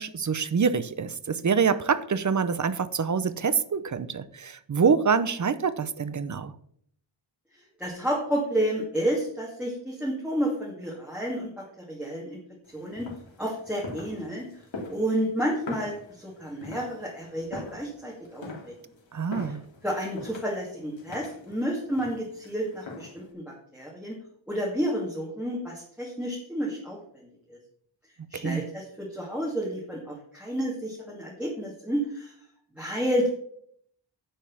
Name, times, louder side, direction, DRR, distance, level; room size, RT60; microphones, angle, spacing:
voice 1, 0.0-6.5 19.1-19.6 28.3-28.6, right 6 dB, 40° right, 14 dB, 0.7 m, -26 dB
voice 2, 7.8-12.4 12.7-13.1 13.4-14.5 14.9-18.7 19.8-24.2 24.5-27.0 27.5-27.6 28.3-32.3 32.8-33.3, equal, ahead, -5 dB, 2.4 m, -30 dB
sound 1, 12.6-23.3, left 3 dB, 80° left, 2.8 m, -43 dB
10.0 x 5.3 x 7.1 m, 0.66 s
wide cardioid pair, 135°, 45 cm